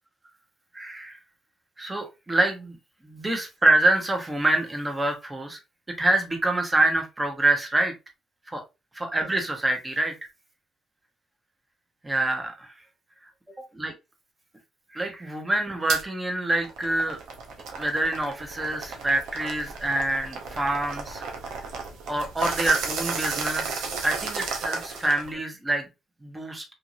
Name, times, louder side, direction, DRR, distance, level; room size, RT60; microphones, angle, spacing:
voice 1, 0.7-1.2 1.8-2.8 3.0-5.6 6.0-7.9 8.5-8.6 8.9-10.1 12.0-12.7 13.7-13.9 14.9-17.2 17.8-21.2 22.1-25.9 26.2-26.6, right 2 dB, 15° right, 4 dB, 0.8 m, -26 dB
sound 1, 15.9-16.0 16.5-25.3, right 4 dB, 90° right, 0.7 m, -33 dB
3.0 x 2.6 x 2.5 m, 0.25 s
cardioid pair, 90°, 0 cm